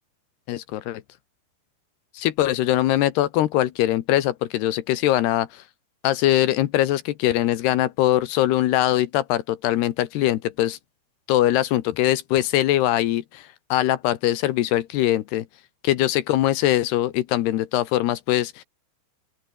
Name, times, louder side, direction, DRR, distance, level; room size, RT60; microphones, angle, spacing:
voice 1, 0.5-1.0 2.1-5.6 6.0-10.8 11.3-15.5 15.8-18.6, left 14 dB, 70° left, 2.9 m, -22 dB
open air
omnidirectional pair, 5.3 m